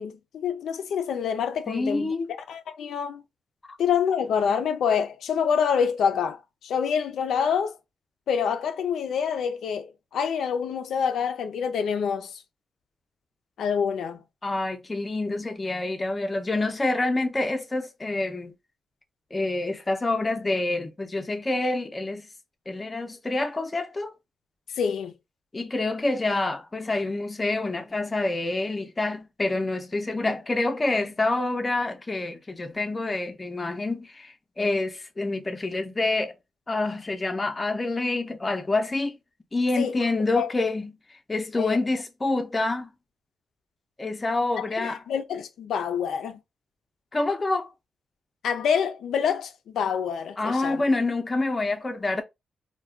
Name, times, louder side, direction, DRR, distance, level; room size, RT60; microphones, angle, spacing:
voice 1, 0.0-2.1 2.5-3.2 3.8-7.8 8.3-12.4 13.6-14.2 24.8-25.1 39.8-40.0 40.3-40.5 41.6-41.8 44.6-46.4 48.4-50.8, left 7 dB, 85° left, 0.4 m, -26 dB
voice 2, 1.7-2.3 14.4-18.5 19.3-22.3 22.7-24.1 25.5-36.4 36.7-39.2 39.5-40.9 41.3-42.9 44.0-45.0 47.1-47.7 50.4-52.2, left 2 dB, 20° left, 0.5 m, -27 dB
2.3 x 2.1 x 3.5 m
cardioid pair, 115°, 0 cm